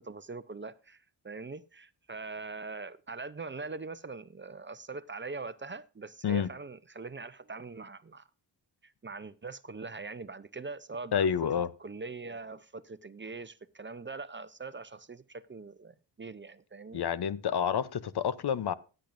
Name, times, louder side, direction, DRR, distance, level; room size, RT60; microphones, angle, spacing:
voice 1, 0.0-8.3 8.8-11.3 11.8-17.1, right 4 dB, 25° right, 0.6 m, -42 dB
voice 2, 11.1-11.7 16.9-18.7, left 8 dB, 55° left, 0.8 m, -29 dB
16.5 x 9.0 x 2.6 m
cardioid pair, 55°, 46 cm